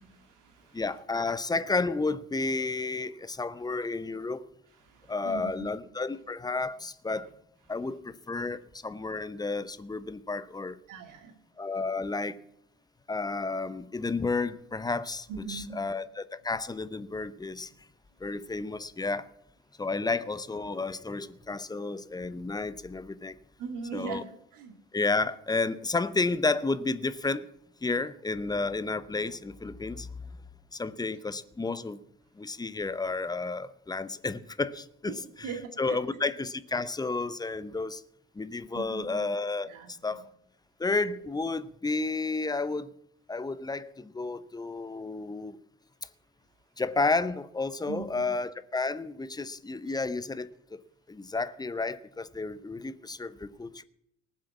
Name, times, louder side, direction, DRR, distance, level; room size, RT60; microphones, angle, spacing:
voice 1, 0.0-0.8 4.8-5.7 10.9-11.3 15.3-15.8 23.6-24.7 35.1-36.0 38.7-39.3 39.7-40.2 47.9-48.3, right 6 dB, 55° right, 2.3 m, -41 dB
voice 2, 0.7-4.4 5.1-7.3 7.7-10.8 11.6-12.4 13.1-17.7 18.2-19.3 19.8-23.4 23.9-24.2 24.9-27.5 27.8-30.2 30.7-32.0 32.3-35.5 35.8-38.0 38.3-40.2 40.8-42.9 43.3-45.6 46.8-50.8 51.1-53.8, left 3 dB, 10° left, 0.8 m, -31 dB
19.0 x 7.5 x 7.2 m
figure-of-eight pair, 50°, 38 cm